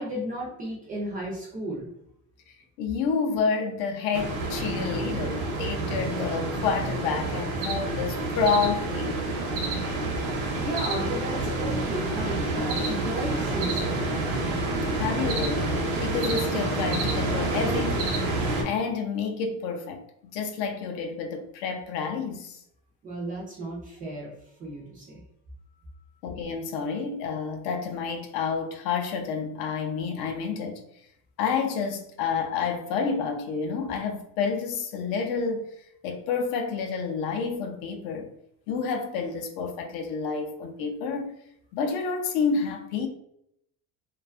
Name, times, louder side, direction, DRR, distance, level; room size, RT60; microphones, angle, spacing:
voice 1, 0.0-1.9 10.3-14.1 23.0-24.3 24.6-25.2, right 1 dB, 20° right, 0.3 m, -34 dB
voice 2, 2.8-9.2 14.9-18.1 18.6-22.6 26.2-30.8 31.4-35.7 36.0-38.3 38.7-41.3 41.7-43.1, left 5 dB, 60° left, 0.5 m, -29 dB
sound 1, 4.1-18.6, right 2 dB, 75° right, 0.7 m, -28 dB
2.4 x 2.2 x 2.3 m
cardioid pair, 170°, 40 cm